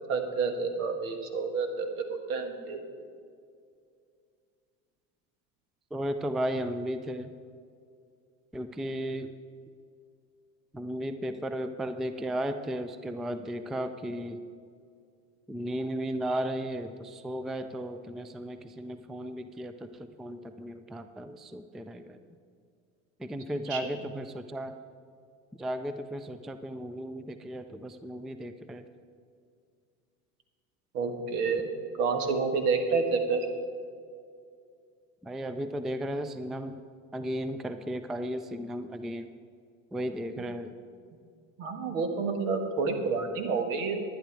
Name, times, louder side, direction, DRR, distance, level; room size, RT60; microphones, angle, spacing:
voice 1, 0.1-3.1 23.7-23.9 30.9-31.7 32.0-33.5 40.4-40.5 41.6-44.0, right 4 dB, 75° right, 5 dB, 1.7 m, -29 dB
voice 2, 5.9-7.3 8.5-9.3 10.7-14.4 15.5-22.2 23.2-24.8 25.6-28.9 35.2-36.8 37.1-39.3 39.9-40.7, equal, ahead, 10 dB, 0.3 m, -35 dB
11.0 x 10.5 x 4.6 m, 2.3 s
hypercardioid pair, 90°, 40 cm